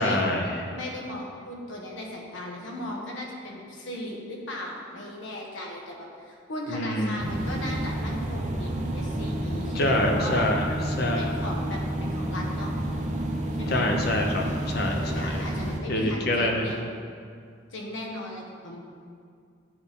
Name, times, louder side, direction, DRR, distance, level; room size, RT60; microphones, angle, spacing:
voice 1, 0.0-0.6 6.7-7.2 9.7-10.6 11.0-11.3 13.7-15.4 15.9-16.6, left 1 dB, 55° left, 2 dB, 0.7 m, -26 dB
voice 2, 0.7-10.5 11.1-12.8 13.6-13.8 14.8-16.8 17.7-18.8, left 1 dB, 85° left, -1 dB, 1.2 m, -37 dB
sound 1, 7.2-15.8, right 1 dB, 40° right, 0.7 m, -30 dB
9.7 x 4.0 x 3.6 m, 2.2 s
head